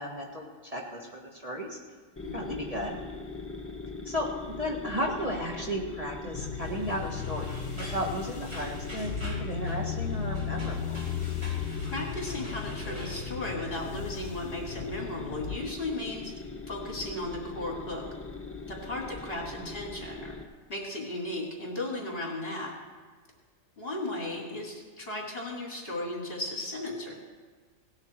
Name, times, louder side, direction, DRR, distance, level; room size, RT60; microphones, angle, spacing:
voice 1, 0.0-1.8 2.3-3.0 4.0-4.3 4.6-11.0 19.6-19.7, equal, 30° right, -2 dB, 1.5 m, -34 dB
voice 2, 2.2-2.6 11.5-16.3 16.7-18.1 18.7-20.4 20.7-22.7 23.8-27.1, left 2 dB, 45° left, -2 dB, 3.0 m, -36 dB
sound 1, 2.2-20.4, left 3 dB, 15° left, 0.6 m, -41 dB
sound 2, 6.3-15.6, left 8 dB, 80° left, 1.1 m, -36 dB
sound 3, 6.6-13.3, right 1 dB, 55° right, 4.1 m, -46 dB
18.0 x 10.5 x 4.5 m, 1.5 s
omnidirectional pair, 1.4 m